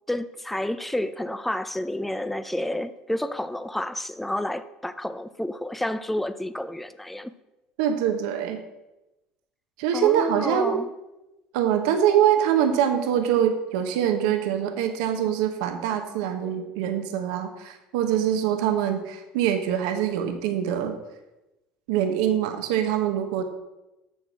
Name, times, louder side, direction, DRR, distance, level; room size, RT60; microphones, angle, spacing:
voice 1, 0.1-7.3 9.9-10.9, left 1 dB, 5° left, 0.5 m, -30 dB
voice 2, 7.8-8.6 9.8-10.8 11.5-21.0 21.9-23.4, right 9 dB, 80° right, 1.2 m, -24 dB
9.1 x 6.6 x 6.0 m
supercardioid pair, 85°, 4 cm